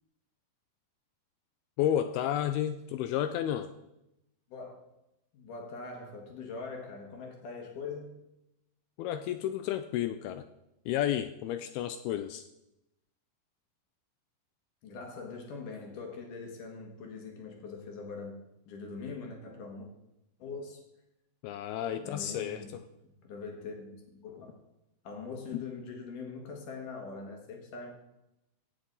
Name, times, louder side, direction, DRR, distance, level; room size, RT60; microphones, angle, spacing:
voice 1, 1.8-3.7 9.0-10.4 10.9-12.5 21.4-22.8 25.5-25.6, left 11 dB, 80° left, 10 dB, 2.3 m, -31 dB
voice 2, 4.5-4.8 5.3-8.2 14.8-19.9 20.4-20.8 22.0-22.8 23.0-24.6 25.0-27.9, left 4 dB, 60° left, 2 dB, 2.9 m, -42 dB
16.5 x 6.2 x 4.0 m, 0.87 s
omnidirectional pair, 4.6 m